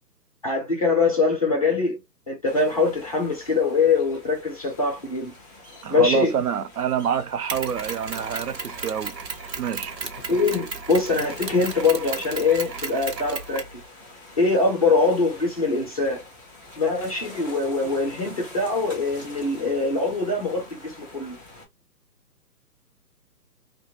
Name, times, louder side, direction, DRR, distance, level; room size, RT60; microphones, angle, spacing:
voice 1, 0.4-2.0 2.3-5.3 5.9-6.3 10.3-13.8 14.4-16.2 16.8-21.4, left 3 dB, 25° left, 0.6 m, -23 dB
sound 1, 2.4-21.6, left 2 dB, 15° right, 0.7 m, -46 dB
voice 2, 5.8-9.1 9.6-9.9, right 8 dB, 65° right, 0.5 m, -26 dB
Mechanisms, 7.5-13.8, right 5 dB, 90° right, 0.9 m, -34 dB
2.9 x 2.1 x 2.8 m
figure-of-eight pair, 150°, 49 cm